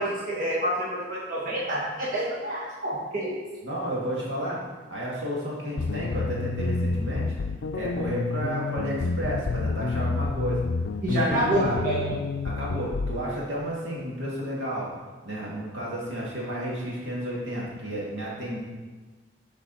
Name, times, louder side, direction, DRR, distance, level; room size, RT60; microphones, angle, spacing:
voice 1, 0.0-3.4 11.0-12.1, right 1 dB, 45° right, -7 dB, 1.7 m, -27 dB
voice 2, 3.6-7.4 7.7-10.6 11.1-11.8 12.4-14.9 15.2-18.6, equal, 75° right, -5 dB, 2.3 m, -32 dB
sound 1, 5.8-13.2, left 3 dB, 75° left, 0.4 m, -29 dB
6.8 x 5.2 x 5.7 m, 1.3 s
head